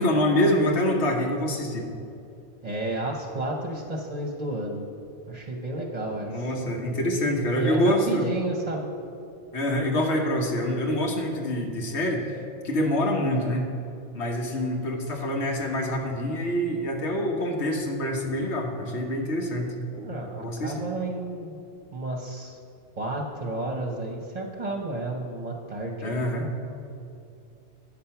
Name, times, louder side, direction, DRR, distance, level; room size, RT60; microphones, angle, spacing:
voice 1, 0.0-1.9 6.3-8.3 9.5-12.2 12.6-13.7 14.1-20.1 20.4-20.7 26.0-26.5, equal, 85° left, 1 dB, 1.3 m, -26 dB
voice 2, 2.6-4.8 5.3-6.5 7.5-8.9 20.0-21.6 21.9-22.6 23.0-26.4, right 2 dB, 40° right, 0 dB, 0.8 m, -32 dB
8.8 x 5.6 x 5.7 m, 2.6 s
omnidirectional pair, 1.1 m